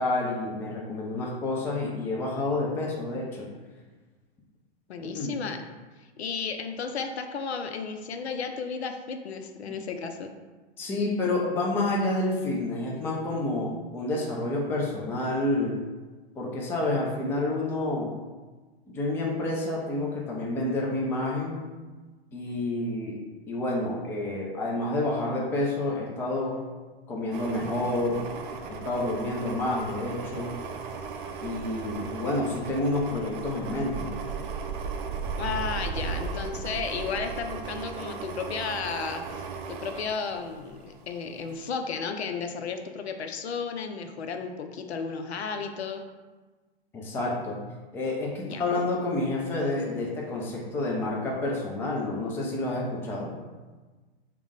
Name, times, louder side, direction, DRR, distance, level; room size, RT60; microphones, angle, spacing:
voice 1, 0.0-3.5 5.1-5.4 10.8-15.8 16.4-18.1 18.9-21.6 22.3-23.2 23.5-26.6 27.1-28.2 28.8-30.6 31.4-34.1 46.9-47.6 47.9-53.3, left 2 dB, 10° left, -3 dB, 0.3 m, -29 dB
voice 2, 4.9-5.6 6.0-10.3 35.4-46.0 48.4-48.6, left 5 dB, 85° left, 6 dB, 0.5 m, -33 dB
sound 1, 27.3-41.0 41.4-41.6, right 5 dB, 55° right, 0.5 m, -36 dB
3.4 x 2.1 x 3.6 m, 1.3 s
hypercardioid pair, 115°, 31 cm